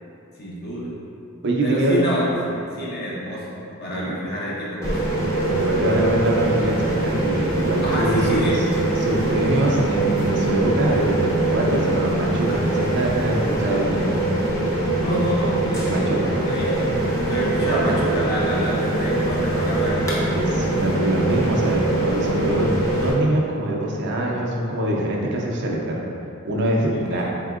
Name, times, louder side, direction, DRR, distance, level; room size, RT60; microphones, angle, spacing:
voice 1, 0.4-0.9 1.6-5.0 7.8-8.7 15.0-20.2 26.9-27.2, equal, 50° left, -6 dB, 0.8 m, -27 dB
voice 2, 1.4-2.0 3.9-4.3 5.5-8.4 9.0-14.2 15.8-16.3 17.7-17.9 20.3-26.0 26.4-27.2, right 1 dB, 55° right, -2 dB, 0.5 m, -23 dB
sound 1, 4.8-23.1, right 2 dB, 15° left, 0.7 m, -23 dB
4.2 x 3.6 x 2.4 m, 2.7 s
head